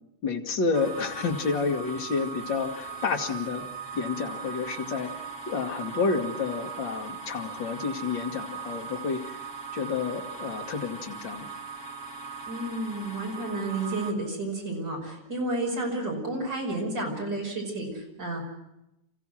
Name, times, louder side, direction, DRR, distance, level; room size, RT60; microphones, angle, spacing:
voice 1, 0.2-3.6 3.9-11.5, left 4 dB, 45° left, 2 dB, 2.1 m, -30 dB
sound 1, 0.7-14.1, right 5 dB, 10° right, 0.9 m, -39 dB
voice 2, 12.5-18.4, right 2 dB, 35° right, 0 dB, 6.2 m, -31 dB
29.5 x 15.5 x 6.3 m, 0.86 s
omnidirectional pair, 3.5 m